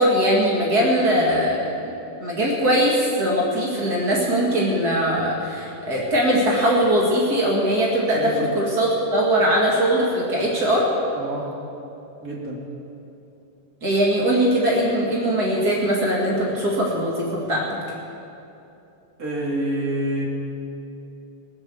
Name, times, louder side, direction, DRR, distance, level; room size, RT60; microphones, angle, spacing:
voice 1, 0.0-1.9 2.2-10.8 13.8-17.6, equal, 65° right, -3 dB, 0.9 m, -21 dB
voice 2, 11.1-11.4 12.2-12.6 19.2-20.2, right 1 dB, 30° right, -3 dB, 1.8 m, -27 dB
21.5 x 8.2 x 7.0 m, 2.8 s
omnidirectional pair, 5.1 m